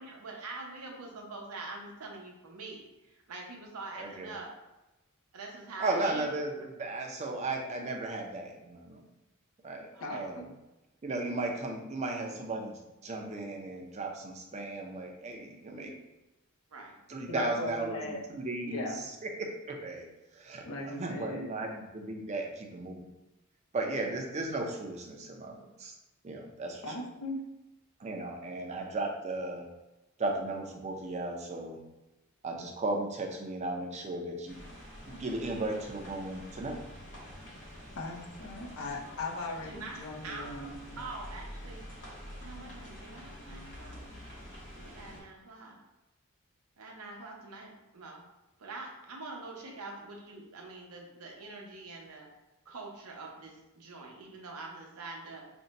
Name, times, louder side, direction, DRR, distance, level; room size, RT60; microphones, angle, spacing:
voice 1, 0.0-4.5 5.3-6.3 9.9-10.2 11.4-11.5 16.7-17.0 39.0-39.3 39.6-41.8 42.4-44.1 44.7-45.8 46.8-48.2 48.6-52.3 52.7-55.5, right 3 dB, 90° right, 0 dB, 0.7 m, -45 dB
voice 2, 4.0-4.3 5.8-9.1 9.6-10.5 11.0-15.9 17.1-20.0 20.3-23.1 23.7-25.9 26.2-26.9 28.0-29.7 30.2-31.8 32.4-34.6 35.1-36.8, right 2 dB, 30° right, 1 dB, 0.4 m, -36 dB
voice 3, 10.0-10.5 17.3-18.2 18.6-19.0 20.6-21.5 26.8-27.4 35.1-35.2 38.0-41.0, left 2 dB, 70° left, 0 dB, 0.6 m, -38 dB
sound 1, 34.5-45.2, equal, 55° left, 1.2 m, -47 dB
2.6 x 2.2 x 3.9 m, 1.0 s
head